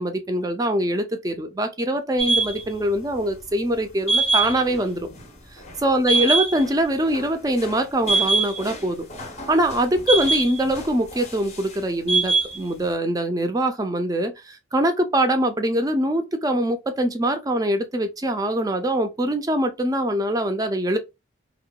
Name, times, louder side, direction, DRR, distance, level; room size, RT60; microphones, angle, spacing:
voice 1, 0.0-5.1 5.8-9.1 9.5-21.0, right 1 dB, 20° right, 0.3 m, -23 dB
sound 1, 2.2-2.6 4.1-4.8 5.1-5.2 5.7-5.8 6.1-6.7 7.0-7.8 8.0-8.8 9.1-10.9 11.1-11.6 12.1-12.6, right 3 dB, 35° left, 0.5 m, -23 dB
2.8 x 2.1 x 2.2 m
head